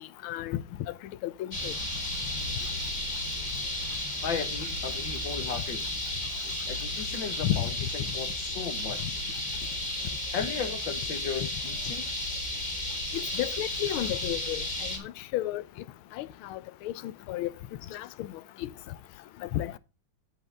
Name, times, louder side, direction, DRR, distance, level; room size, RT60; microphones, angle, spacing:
voice 1, 0.2-0.6 1.2-1.7 7.4-7.7 13.1-15.6 16.2-17.5 17.9-18.3 18.6-18.7 19.4-19.8, left 14 dB, 85° left, 1.5 m, -32 dB
sound 1, 1.5-15.0, left 1 dB, 20° left, 2.4 m, -33 dB
voice 2, 4.2-5.9 6.7-9.2 10.3-12.1, left 7 dB, 65° left, 1.8 m, -36 dB
8.2 x 8.0 x 3.3 m
omnidirectional pair, 2.3 m